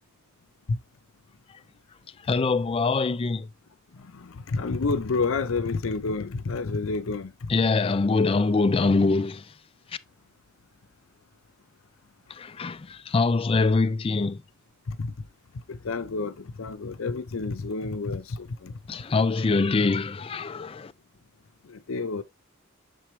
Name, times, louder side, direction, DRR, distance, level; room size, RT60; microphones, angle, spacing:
voice 1, 2.3-3.5 7.5-9.5 12.3-14.4 18.9-20.9, left 3 dB, 25° left, 0.3 m, -24 dB
voice 2, 4.5-7.3 14.9-15.1 15.8-18.7 21.9-22.2, left 3 dB, 70° left, 0.6 m, -29 dB
6.9 x 4.4 x 3.1 m
head